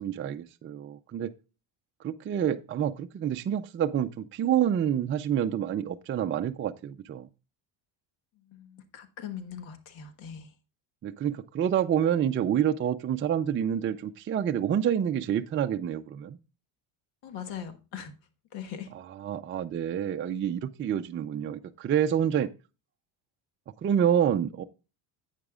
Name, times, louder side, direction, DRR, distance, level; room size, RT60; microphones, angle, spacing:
voice 1, 0.0-1.3 2.0-7.3 11.0-16.4 18.9-22.5 23.8-24.6, right 9 dB, 25° right, 0.4 m, -28 dB
voice 2, 8.4-10.5 17.2-18.1 18.5-18.9, left 8 dB, 70° left, 1.5 m, -41 dB
11.0 x 8.2 x 2.4 m
supercardioid pair, 95°, 48 cm